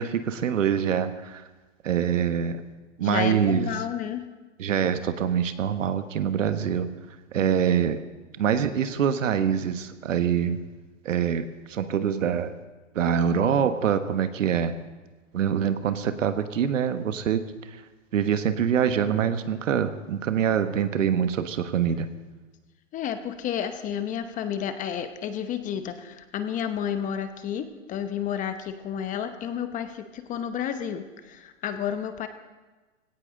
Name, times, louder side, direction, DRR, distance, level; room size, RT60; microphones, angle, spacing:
voice 1, 0.0-1.4 1.8-2.6 3.0-3.7 4.6-6.9 7.3-8.0 8.4-10.6 11.0-12.5 12.9-14.8 15.3-17.8 18.1-22.1, right 8 dB, 75° right, 10 dB, 1.4 m, -25 dB
voice 2, 3.0-4.2 7.4-7.7 22.9-32.3, left 9 dB, 20° left, 9 dB, 0.9 m, -31 dB
18.0 x 17.0 x 3.8 m, 1.2 s
hypercardioid pair, 130°, 39 cm